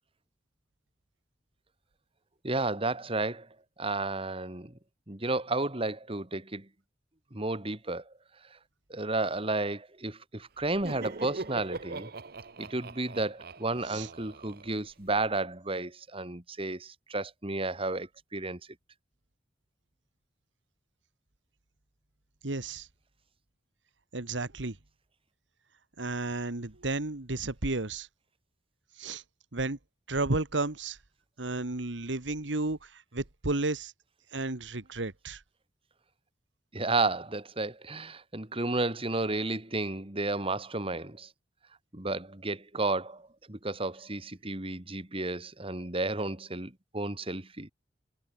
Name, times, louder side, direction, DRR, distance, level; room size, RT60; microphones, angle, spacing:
voice 1, 2.4-3.5 3.8-4.7 5.1-6.7 7.3-8.1 8.5-8.6 8.9-12.1 12.6-18.6 36.7-41.3 41.9-47.7, right 2 dB, 30° right, 2.4 m, -32 dB
Laughter, 10.6-15.3, right 3 dB, 60° right, 1.1 m, -42 dB
voice 2, 22.4-22.9 24.1-24.8 26.0-28.1 29.0-29.2 29.5-29.8 30.1-31.0 31.4-33.9 34.3-35.4, right 2 dB, 90° right, 1.8 m, -32 dB
head